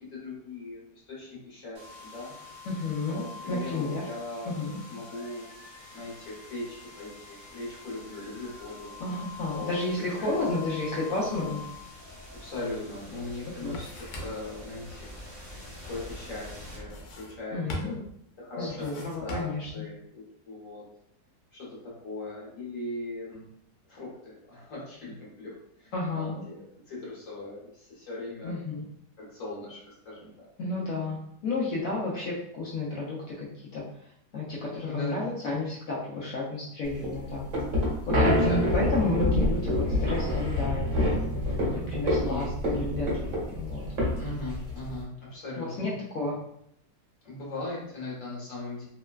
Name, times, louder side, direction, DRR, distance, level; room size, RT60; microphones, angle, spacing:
voice 1, 0.1-2.3 3.1-4.6 4.9-5.4 5.9-8.9 9.5-10.4 12.4-15.1 15.9-17.9 18.4-20.8 21.5-23.5 23.9-26.6 26.9-28.6 29.2-30.5 34.9-35.2 38.4-38.9 42.1-42.5 44.2-45.9 47.2-48.8, left 2 dB, 55° left, -6 dB, 1.2 m, -39 dB
sound 1, 1.7-17.6, left 3 dB, 15° right, 0.5 m, -45 dB
voice 2, 2.7-4.1 4.5-4.8 9.0-11.6 13.6-13.8 17.5-18.0 18.6-19.9 25.9-26.4 28.4-28.8 30.6-37.5 38.1-40.9 41.6-43.1 43.5-44.0 45.6-46.4, left 2 dB, 70° left, -5 dB, 0.8 m, -31 dB
sound 2, 13.7-14.6 16.8-17.4 17.7-18.2 18.7-19.7, equal, 90° left, 1.3 m, -40 dB
sound 3, 36.9-45.0, left 1 dB, 50° right, 1.1 m, -27 dB
3.1 x 2.1 x 2.2 m, 0.74 s
omnidirectional pair, 1.9 m